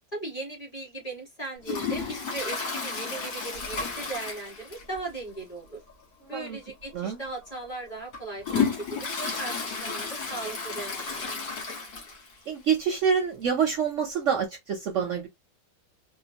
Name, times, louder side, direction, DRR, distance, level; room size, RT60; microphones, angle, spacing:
voice 1, 0.1-5.8 6.3-11.3, right 2 dB, 25° left, 1.5 m, -38 dB
Toilet flush, 1.6-5.1 5.3-5.4 5.9-6.0 6.8-6.9 7.5-12.4 12.7-12.8 13.0-13.1 14.1-14.2, left 5 dB, 75° left, 1.9 m, -32 dB
voice 2, 6.2-6.6 6.9-7.2 12.5-15.3, right 7 dB, 60° right, 0.9 m, -27 dB
3.7 x 2.2 x 2.7 m
omnidirectional pair, 1.7 m